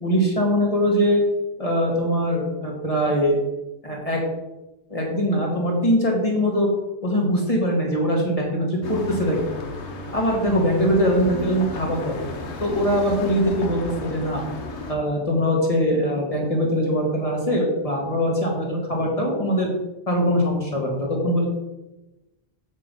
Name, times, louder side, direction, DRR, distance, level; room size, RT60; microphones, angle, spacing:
voice 1, 0.0-1.2 1.6-3.4 3.8-4.2 4.9-6.7 7.0-9.4 10.1-12.2 12.6-14.4 14.9-19.7 20.1-21.5, equal, 30° left, -1 dB, 2.2 m, -22 dB
sound 1, 8.8-14.9, left 2 dB, 85° left, 1.4 m, -34 dB
7.4 x 6.1 x 5.6 m, 1.0 s
omnidirectional pair, 1.1 m